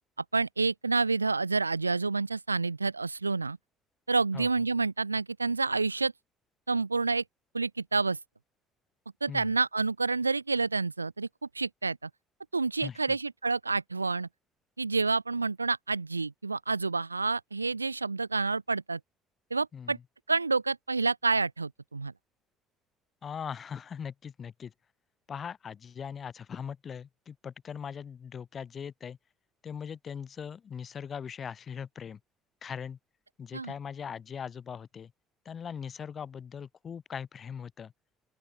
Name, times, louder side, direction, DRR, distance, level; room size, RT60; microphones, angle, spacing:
voice 1, 0.3-3.6 4.1-6.1 6.7-7.2 7.5-8.2 9.2-11.3 11.5-12.1 12.5-14.3 14.8-19.0 19.5-20.0 20.3-22.1 33.5-33.7, right 3 dB, 90° right, 0.4 m, -28 dB
voice 2, 12.8-13.2 19.7-20.0 23.2-24.7 25.3-29.2 29.6-32.2 32.6-33.0 33.4-35.1 35.4-37.9, left 7 dB, 40° left, 6.7 m, -40 dB
open air
figure-of-eight pair, 55°, 0 cm